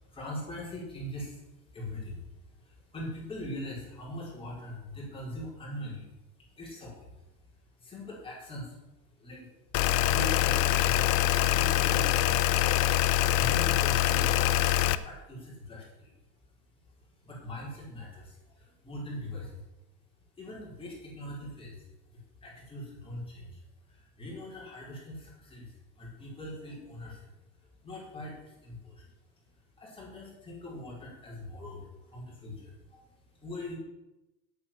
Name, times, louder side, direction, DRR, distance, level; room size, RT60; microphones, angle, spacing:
voice 1, 0.0-16.4 16.7-19.6 20.2-29.1 29.4-33.7, left 1 dB, 15° left, -5 dB, 4.6 m, -42 dB
sound 1, 9.7-15.0, left 13 dB, 85° left, 0.8 m, -24 dB
8.3 x 8.3 x 8.6 m, 0.98 s
cardioid pair, 160°, 40 cm